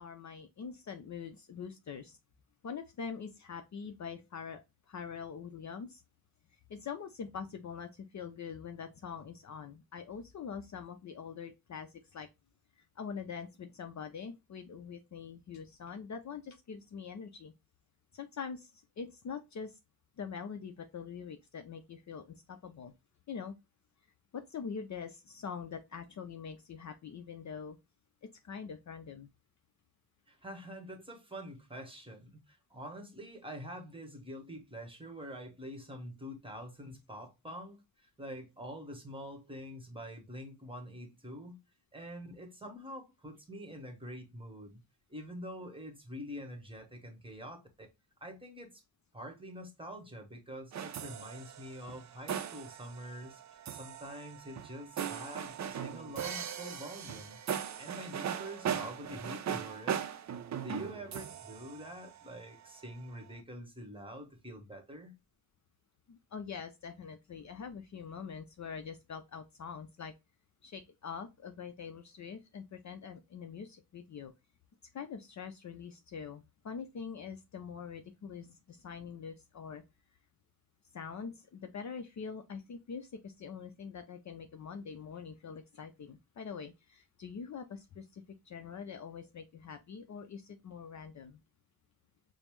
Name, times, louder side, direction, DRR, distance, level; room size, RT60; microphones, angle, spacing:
voice 1, 0.0-2.2 2.6-4.6 4.9-6.0 6.7-12.3 12.8-17.5 18.1-19.8 20.2-22.9 23.3-23.5 24.3-27.8 28.2-29.3 66.1-70.1 70.6-74.3 74.9-79.8 80.9-91.4, left 6 dB, 45° left, 0.5 m, -44 dB
voice 2, 30.3-41.6 41.9-44.8 45.1-47.9 48.2-48.8 49.1-60.1 60.6-65.1, equal, 15° right, 1.0 m, -46 dB
sound 1, 50.7-62.6, right 8 dB, 45° right, 0.4 m, -39 dB
5.1 x 2.0 x 3.0 m
wide cardioid pair, 115°, 39 cm